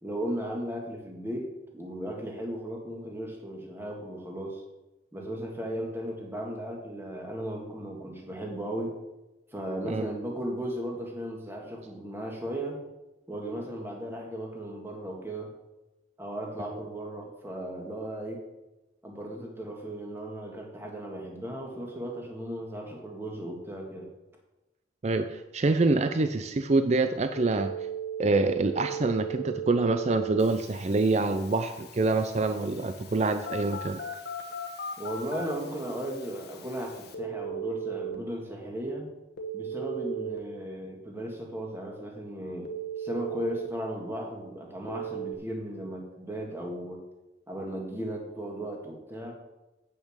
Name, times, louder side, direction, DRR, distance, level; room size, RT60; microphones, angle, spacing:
voice 1, 0.0-4.6 5.1-9.0 9.5-12.8 13.3-15.5 16.2-18.4 19.0-24.1 35.0-39.1 39.5-42.7 43.0-47.0 47.5-49.3, right 1 dB, 10° right, 0 dB, 1.8 m, -36 dB
voice 2, 25.0-27.7 28.2-34.0, right 3 dB, 35° right, 8 dB, 0.4 m, -26 dB
Telephone, 27.3-38.2 39.4-40.4 42.7-43.7 44.9-45.4, right 5 dB, 55° left, 1.1 m, -37 dB
8.4 x 6.7 x 6.4 m, 1.0 s
head